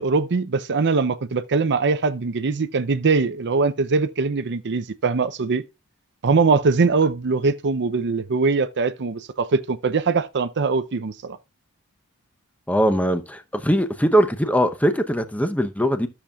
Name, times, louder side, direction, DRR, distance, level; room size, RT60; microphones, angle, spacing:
voice 1, 0.0-5.6 6.2-11.4, right 4 dB, 50° right, 0.6 m, -22 dB
voice 2, 12.7-16.1, equal, 5° left, 0.8 m, -21 dB
13.0 x 7.1 x 2.4 m
head